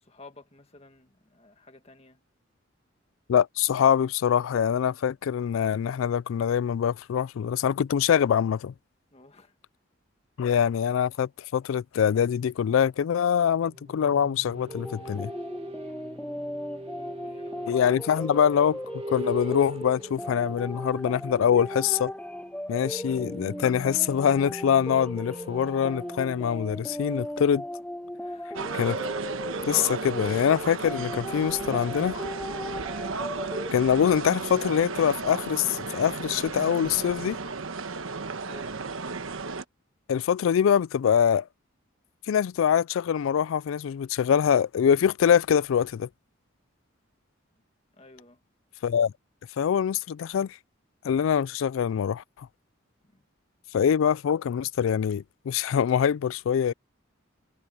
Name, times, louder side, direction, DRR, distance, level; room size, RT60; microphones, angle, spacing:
voice 1, 0.0-2.2 9.1-9.6 17.2-17.7 28.1-28.6 38.4-38.9 47.9-48.4 53.1-53.2, left 3 dB, 30° left, 1.6 m, -53 dB
voice 2, 3.3-8.7 10.4-15.3 17.7-18.8 19.1-22.1 22.7-27.6 28.7-29.0 29.7-32.2 33.7-37.4 40.1-41.5 42.3-46.1 48.8-49.1 49.6-50.6 51.0-52.5 53.7-56.7, left 8 dB, 75° left, 0.3 m, -24 dB
sound 1, 13.6-28.2, right 1 dB, 30° right, 1.9 m, -42 dB
sound 2, 14.7-33.7, left 1 dB, 5° left, 0.4 m, -37 dB
sound 3, 28.5-39.6, right 4 dB, 80° right, 1.2 m, -34 dB
head